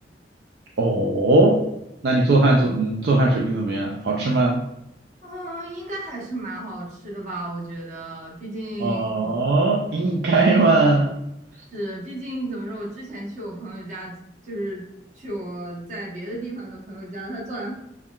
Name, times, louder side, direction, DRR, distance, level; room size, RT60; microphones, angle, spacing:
voice 1, 0.8-1.6 2.0-4.6 8.8-11.1, right 2 dB, 65° right, -2 dB, 0.4 m, -19 dB
voice 2, 5.2-9.4 11.5-14.2 14.4-14.9 15.1-17.7, right 1 dB, 45° right, -3 dB, 0.9 m, -33 dB
5.5 x 2.1 x 2.3 m, 0.83 s
head